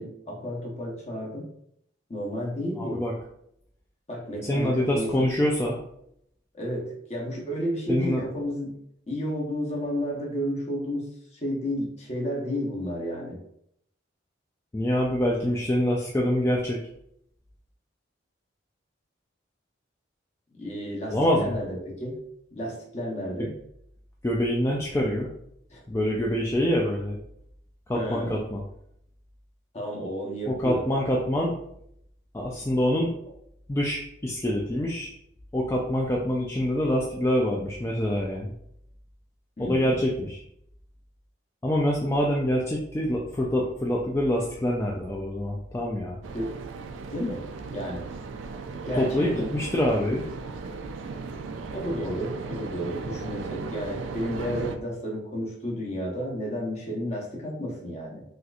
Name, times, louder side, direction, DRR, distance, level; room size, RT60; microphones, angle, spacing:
voice 1, 0.0-1.5 2.1-3.0 4.1-5.3 6.5-8.8 9.1-13.4 20.5-22.2 22.5-23.5 25.7-25.8 27.9-28.4 29.7-30.9 39.6-39.9 46.3-46.6 47.1-47.4 47.7-48.0 48.9-49.5 51.7-58.2, equal, 35° left, -2 dB, 0.9 m, -32 dB
voice 2, 2.8-3.1 4.5-5.8 7.9-8.2 14.7-16.8 21.1-21.5 24.2-25.3 25.9-27.2 27.9-28.6 30.5-31.5 32.3-33.1 33.7-35.1 35.5-38.5 39.6-40.4 41.6-46.2 48.9-50.3, left 1 dB, 15° left, -3 dB, 0.3 m, -25 dB
sound 1, 46.2-54.8, right 4 dB, 85° right, 0.3 m, -36 dB
4.2 x 2.5 x 2.3 m, 0.72 s
head